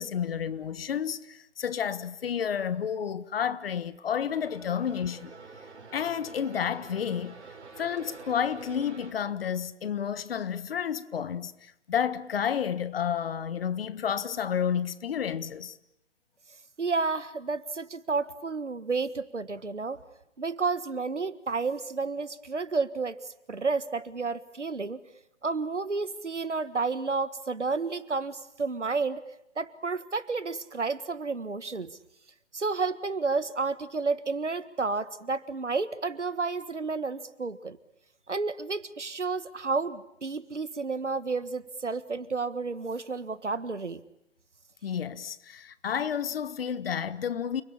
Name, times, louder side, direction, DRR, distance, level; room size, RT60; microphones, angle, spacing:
voice 1, 0.0-5.3 5.9-7.3 7.8-15.8 44.8-47.6, left 8 dB, 55° left, 1.6 m, -31 dB
sound 1, 4.3-9.1, right 4 dB, 70° right, 5.0 m, -47 dB
voice 2, 16.8-20.0 20.4-23.2 23.5-25.0 25.4-29.2 29.5-32.0 32.5-37.8 38.3-44.0, right 4 dB, 90° right, 1.7 m, -31 dB
29.5 x 21.5 x 8.7 m
figure-of-eight pair, 135°, 35 cm